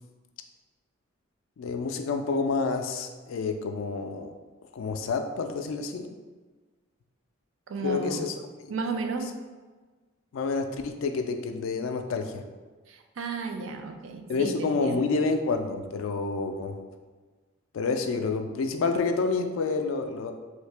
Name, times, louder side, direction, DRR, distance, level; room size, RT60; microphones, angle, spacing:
voice 1, 1.6-4.3 4.7-6.1 7.8-8.4 8.6-8.7 10.3-12.4 14.3-16.8 17.7-20.3, left 4 dB, 85° left, 6 dB, 0.3 m, -28 dB
voice 2, 7.7-8.2 8.7-9.3 12.9-15.0, right 4 dB, 75° right, 5 dB, 0.4 m, -33 dB
3.2 x 2.7 x 3.3 m, 1.4 s
head